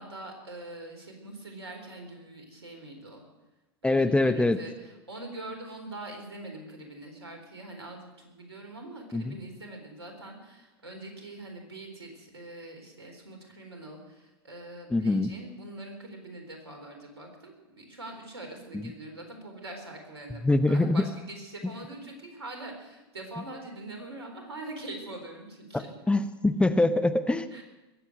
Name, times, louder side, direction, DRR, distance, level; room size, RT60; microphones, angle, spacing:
voice 1, 0.0-3.2 3.8-25.9 27.5-27.6, right 2 dB, 85° right, 3 dB, 3.9 m, -43 dB
voice 2, 3.8-4.6 9.1-9.3 14.9-15.3 20.4-21.1 26.1-27.5, left 2 dB, 10° left, 10 dB, 0.9 m, -23 dB
21.0 x 8.4 x 7.7 m, 1.1 s
hypercardioid pair, 90°, 13 cm